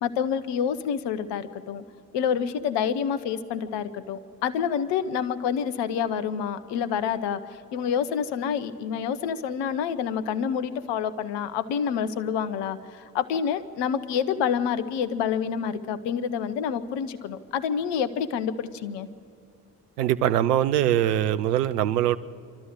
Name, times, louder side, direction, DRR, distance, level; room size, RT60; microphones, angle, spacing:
voice 1, 0.0-1.8 2.1-7.4 7.7-19.1, left 7 dB, 60° left, 14 dB, 1.1 m, -28 dB
voice 2, 20.0-22.2, right 11 dB, 80° right, 13 dB, 0.7 m, -22 dB
27.0 x 12.5 x 8.1 m, 2.3 s
figure-of-eight pair, 45°, 47 cm